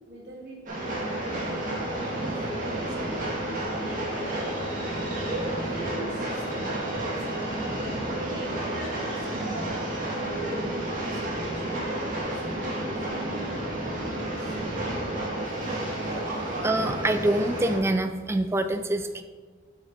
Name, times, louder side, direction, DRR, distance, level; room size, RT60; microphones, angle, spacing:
voice 1, 0.1-1.6 2.1-4.5 5.2-9.7 10.2-11.8 12.2-16.5, right 2 dB, 60° right, -4 dB, 2.2 m, -44 dB
Train, 0.7-17.8, right 1 dB, 40° right, 1.8 m, -31 dB
voice 2, 16.2-19.2, right 1 dB, 15° right, 8 dB, 0.3 m, -26 dB
7.8 x 5.8 x 4.2 m, 1.5 s
head